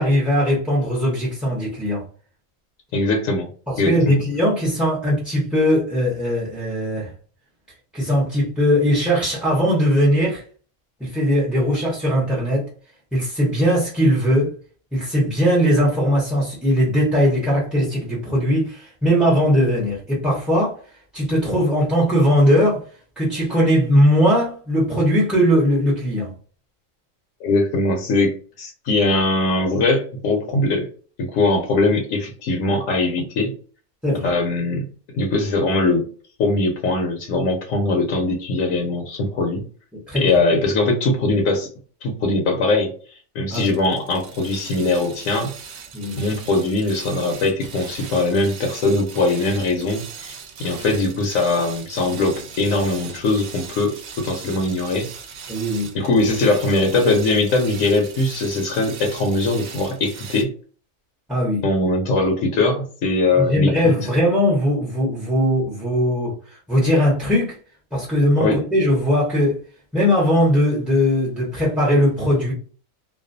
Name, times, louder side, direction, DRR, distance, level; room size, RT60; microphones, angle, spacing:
voice 1, 0.0-2.0 3.7-7.1 7.9-10.4 11.0-12.7 13.1-14.5 14.9-20.8 21.1-22.8 23.2-26.3 34.0-34.3 40.1-40.3 43.5-43.7 45.9-46.2 55.5-55.9 61.3-61.6 63.4-66.3 66.7-67.6 67.9-69.6 69.9-72.5, equal, ahead, -5 dB, 0.4 m, -19 dB
voice 2, 2.9-3.5 3.8-4.2 27.4-30.9 31.2-33.5 34.2-34.9 35.1-36.1 36.4-39.6 40.1-41.7 42.0-42.9 43.3-45.5 46.2-50.3 50.6-55.1 55.9-60.5 61.6-63.9 68.4-68.6, left 2 dB, 80° left, 3 dB, 1.0 m, -21 dB
sound 1, 43.5-60.4, right 6 dB, 65° right, 0.8 m, -39 dB
2.4 x 2.2 x 2.5 m, 0.40 s
omnidirectional pair, 1.4 m